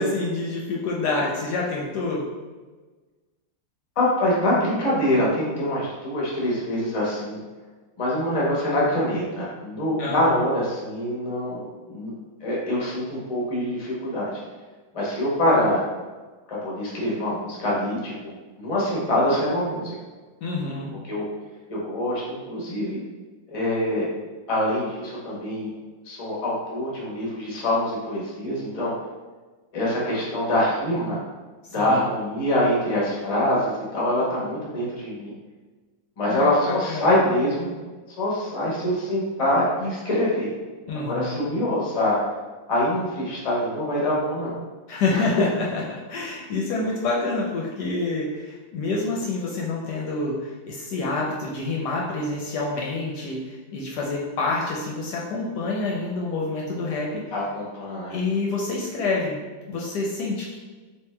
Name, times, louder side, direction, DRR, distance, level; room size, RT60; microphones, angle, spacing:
voice 1, 0.0-2.3 10.0-10.4 20.4-20.9 31.8-32.0 36.2-37.1 40.9-41.5 44.9-57.2 58.1-59.4 59.7-60.6, left 3 dB, 70° left, -3 dB, 1.1 m, -27 dB
voice 2, 4.0-7.4 8.0-12.1 12.4-14.3 14.9-15.8 16.5-20.0 21.0-21.2 21.7-23.0 23.5-24.1 24.5-25.7 26.0-28.9 29.7-31.2 31.7-35.3 36.2-37.7 38.2-40.5 40.9-42.2 42.7-44.5 45.1-45.4 57.3-58.3, left 1 dB, 25° left, -5 dB, 0.7 m, -24 dB
3.5 x 2.9 x 3.2 m, 1.3 s
omnidirectional pair, 2.0 m